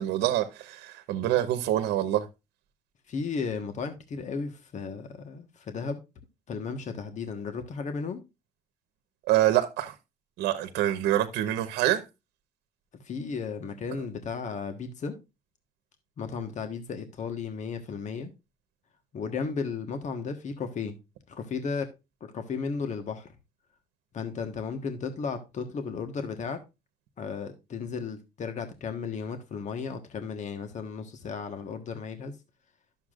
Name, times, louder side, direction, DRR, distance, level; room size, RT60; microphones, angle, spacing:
voice 1, 0.0-2.3 9.3-9.9 10.4-12.0, right 13 dB, 85° right, 1.0 m, -26 dB
voice 2, 3.1-6.0 6.5-8.2 13.0-15.1 16.2-18.3 19.1-20.9 21.3-21.9 22.3-23.3 24.1-26.6 27.2-32.3, left 5 dB, 45° left, 1.4 m, -34 dB
11.5 x 7.1 x 2.5 m
cardioid pair, 110°, 17 cm